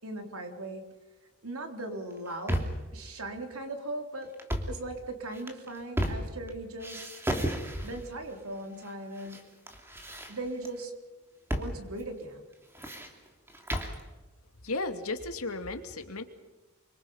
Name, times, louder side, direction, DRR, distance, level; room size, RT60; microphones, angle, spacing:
voice 1, 0.0-1.0 1.4-4.3 4.7-7.1 7.8-9.6 10.3-10.9 11.5-12.4, right 2 dB, 70° right, 4 dB, 3.9 m, -39 dB
sound 1, 2.1-2.9 4.3-4.8 5.3-6.5 6.8-8.1 8.8-9.4 9.7-10.7 11.5-11.7 12.0-12.1 12.5-14.0, equal, 10° right, 2.9 m, -33 dB
voice 2, 14.6-16.2, left 2 dB, 75° left, 7 dB, 2.4 m, -34 dB
28.5 x 25.0 x 5.7 m, 1.2 s
head